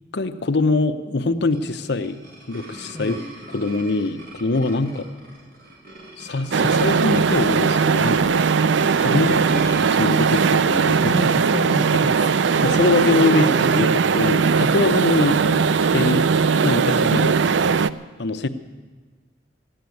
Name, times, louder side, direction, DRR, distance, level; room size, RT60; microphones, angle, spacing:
voice 1, 0.1-2.2 2.5-3.2 3.5-5.0 6.2-8.4 9.0-11.1 12.6-13.5 13.7-15.6 15.9-16.2 16.6-17.4 18.2-18.5, left 3 dB, 65° left, 10 dB, 0.8 m, -23 dB
sound 1, 1.3-10.6, right 1 dB, 60° right, 4.5 m, -42 dB
sound 2, 6.5-17.9, right 5 dB, 80° right, 0.4 m, -19 dB
voice 2, 11.0-12.7 13.1-14.0 16.5-17.2, left 1 dB, 20° left, 6 dB, 0.5 m, -31 dB
14.5 x 10.0 x 9.3 m, 1.3 s
head